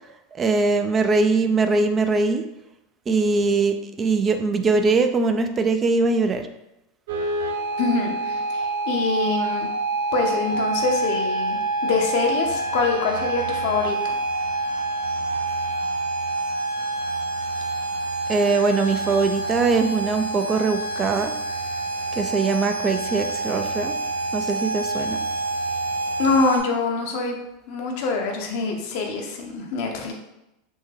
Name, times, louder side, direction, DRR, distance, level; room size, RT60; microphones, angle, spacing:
voice 1, 0.3-2.4 3.1-6.5 18.3-21.3 22.1-23.9 24.3-25.2, right 3 dB, 25° right, 7 dB, 0.3 m, -21 dB
sound 1, 7.1-26.6, right 2 dB, 80° right, 0.5 m, -27 dB
voice 2, 7.8-9.7 10.1-14.2 26.2-27.4 27.7-30.1, left 4 dB, 65° left, 2 dB, 0.7 m, -25 dB
3.5 x 2.1 x 3.3 m, 0.90 s
hypercardioid pair, 105°, 0 cm